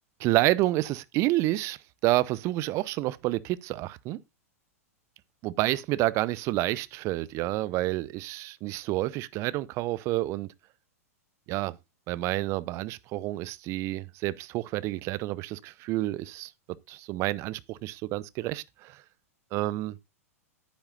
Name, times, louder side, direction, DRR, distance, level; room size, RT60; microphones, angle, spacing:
voice 1, 0.2-1.8 2.0-4.2 5.4-10.5 11.5-11.8 12.1-16.5 16.9-19.0 19.5-20.0, right 17 dB, 35° right, 0.6 m, -29 dB
10.5 x 9.7 x 2.5 m
figure-of-eight pair, 100°, 8 cm